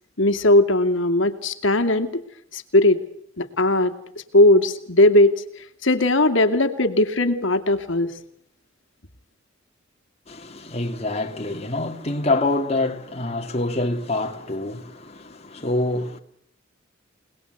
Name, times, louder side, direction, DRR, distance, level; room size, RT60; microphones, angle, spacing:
voice 1, 0.2-2.2 2.5-3.0 3.4-3.9 4.3-5.4 5.8-8.1, left 1 dB, 70° left, 2.6 m, -18 dB
voice 2, 10.3-16.2, left 2 dB, 30° left, 2.5 m, -26 dB
30.0 x 20.0 x 8.0 m
head